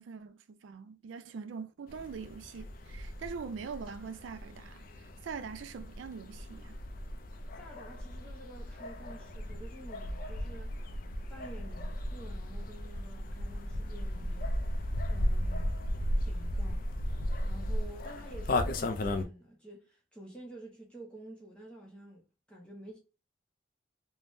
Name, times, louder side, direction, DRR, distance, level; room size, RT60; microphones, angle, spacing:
voice 1, 0.0-4.9 5.2-6.8, right 5 dB, 80° right, 0.3 m, -43 dB
sound 1, 1.9-19.2, left 1 dB, 45° left, 0.3 m, -35 dB
voice 2, 7.6-10.8 11.3-14.5 15.1-15.8 16.2-16.9 17.4-23.0, right 1 dB, 5° left, 0.6 m, -50 dB
3.3 x 2.0 x 2.6 m
head